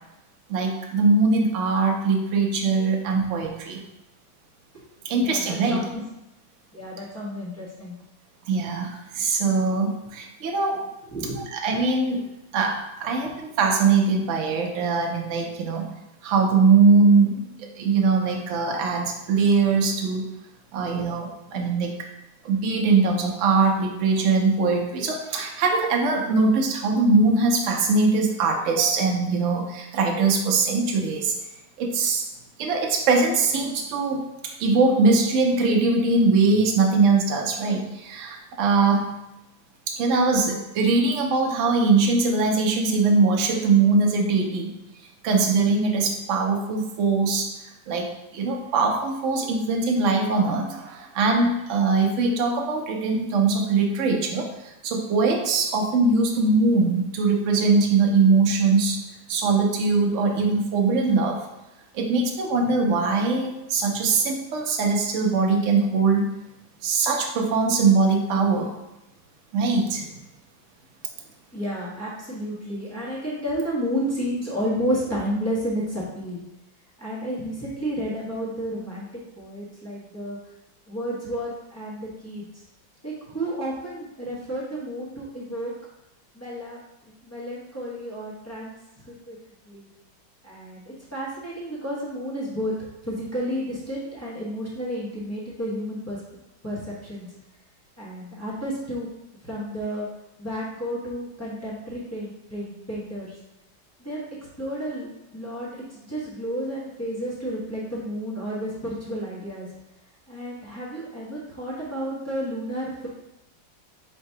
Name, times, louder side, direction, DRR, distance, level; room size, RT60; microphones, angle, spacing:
voice 1, 0.5-3.8 5.0-5.8 8.5-10.9 11.5-12.2 12.5-15.9 16.2-17.4 17.8-20.3 20.7-21.9 22.4-31.3 31.8-32.2 32.6-34.2 34.6-39.1 39.9-44.7 45.2-47.5 47.9-48.1 48.3-54.5 54.8-59.0 59.3-61.4 61.9-66.3 66.8-68.7 69.5-70.1, right 4 dB, 90° right, 1 dB, 0.6 m, -21 dB
voice 2, 5.1-6.0 6.7-8.0 11.1-11.4 21.0-21.1 71.5-76.4 77.0-79.1 79.4-80.4 80.9-82.4 83.0-85.7 86.3-86.8 87.2-88.7 89.1-89.4 89.6-89.9 90.4-92.7 93.0-96.2 96.6-97.3 98.0-99.1 99.4-100.1 100.4-103.3 104.0-104.3 104.6-109.7 110.3-113.1, equal, 20° left, -8 dB, 0.4 m, -31 dB
3.9 x 2.7 x 4.5 m, 0.93 s
omnidirectional pair, 2.1 m